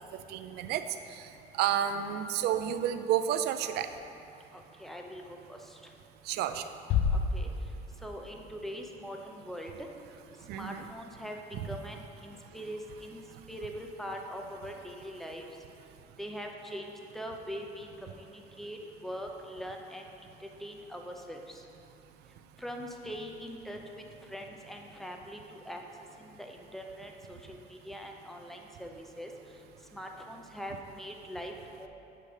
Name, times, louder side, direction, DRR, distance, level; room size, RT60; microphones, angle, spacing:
voice 1, 0.1-0.9 1.2-1.3 1.6-3.9 6.3-6.7 10.5-10.9 11.5-11.7, right 10 dB, 75° right, 10 dB, 0.4 m, -30 dB
voice 2, 4.5-5.2 5.5-5.6 7.3-7.5 8.0-9.7 10.6-11.4 11.7-13.2 13.5-15.4 16.2-16.8 17.1-18.3 18.6-20.0 20.6-21.4 22.6-23.8 24.3-25.8 26.2-27.4 27.9-29.3 29.9-31.5 31.8-31.9, equal, ahead, 1 dB, 0.6 m, -42 dB
Bass drum, 6.9-8.3, left 5 dB, 80° left, 0.5 m, -29 dB
8.4 x 3.3 x 5.2 m, 2.8 s
cardioid pair, 110°, 17 cm